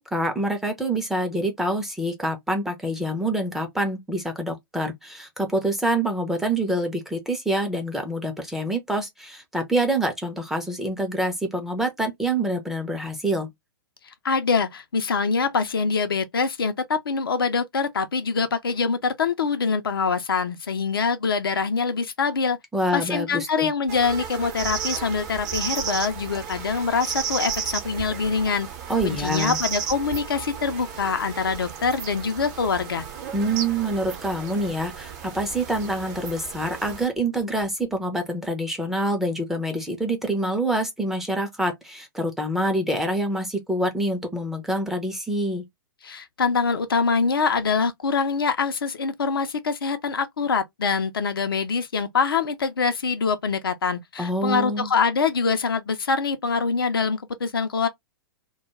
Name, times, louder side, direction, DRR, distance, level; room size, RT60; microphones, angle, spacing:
voice 1, 0.0-13.5 22.7-23.7 28.9-29.6 33.3-45.6 54.2-54.9, right 1 dB, ahead, 0.5 m, -26 dB
voice 2, 14.2-22.6 22.9-28.7 29.0-33.1 46.0-57.9, left 5 dB, 70° left, 0.5 m, -24 dB
sound 1, 23.9-37.1, right 8 dB, 45° right, 0.8 m, -33 dB
2.2 x 2.2 x 2.9 m
figure-of-eight pair, 110°, 12 cm